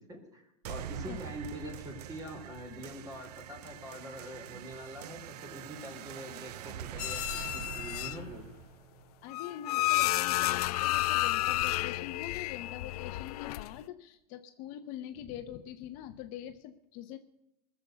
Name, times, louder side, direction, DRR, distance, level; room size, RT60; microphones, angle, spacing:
voice 1, 0.0-8.5, equal, 20° right, 3 dB, 3.5 m, -44 dB
sound 1, 0.6-9.7, right 11 dB, 85° right, 0.6 m, -44 dB
sound 2, 7.0-8.4 9.3-13.8, left 17 dB, 75° left, 0.5 m, -31 dB
voice 2, 9.2-17.2, left 11 dB, 40° left, 8 dB, 0.8 m, -44 dB
20.0 x 7.1 x 7.9 m, 0.86 s
supercardioid pair, 155°, 20 cm